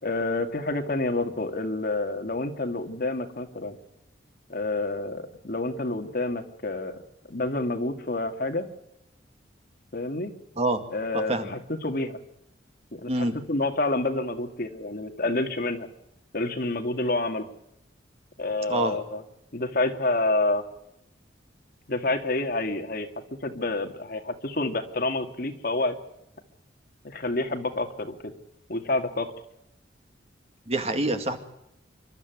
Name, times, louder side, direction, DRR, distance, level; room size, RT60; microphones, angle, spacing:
voice 1, 0.0-3.8 4.5-7.0 7.3-8.7 9.9-10.3 10.9-12.2 12.9-15.9 16.3-17.5 18.4-19.2 19.5-20.6 21.9-23.1 23.4-26.0 27.0-28.3 28.7-29.3, left 2 dB, 55° left, 6 dB, 2.2 m, -28 dB
voice 2, 11.1-11.5 13.1-13.4 18.7-19.0 30.7-31.4, right 2 dB, 35° right, 7 dB, 2.1 m, -26 dB
27.0 x 13.0 x 9.3 m, 0.80 s
head